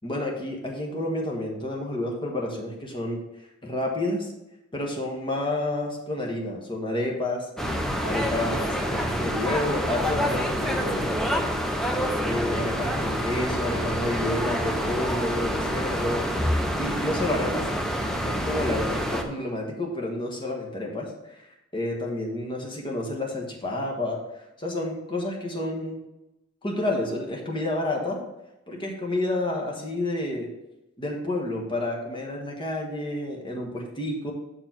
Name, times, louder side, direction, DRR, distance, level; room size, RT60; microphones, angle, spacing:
voice 1, 0.0-3.2 3.6-4.3 4.7-7.4 8.0-11.1 12.2-16.3 16.8-17.7 18.2-21.5 21.7-24.2 24.6-26.0 26.6-28.2 28.7-30.5 31.0-34.3, left 1 dB, 25° left, 0 dB, 1.3 m, -29 dB
sound 1, 7.6-19.2, equal, ahead, 0.7 m, -27 dB
6.4 x 4.6 x 6.0 m, 0.94 s
head